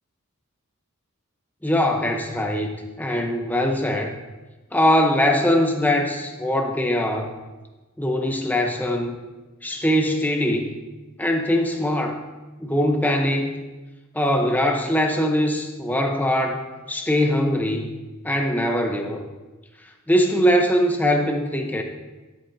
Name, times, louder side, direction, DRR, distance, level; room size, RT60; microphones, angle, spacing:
voice 1, 1.6-4.1 4.7-7.3 8.0-9.2 9.6-10.8 11.2-12.2 12.6-13.6 14.1-16.6 16.9-18.0 18.2-19.2 20.1-21.8, equal, 10° left, 3 dB, 0.7 m, -22 dB
12.5 x 7.8 x 2.7 m, 1.2 s
head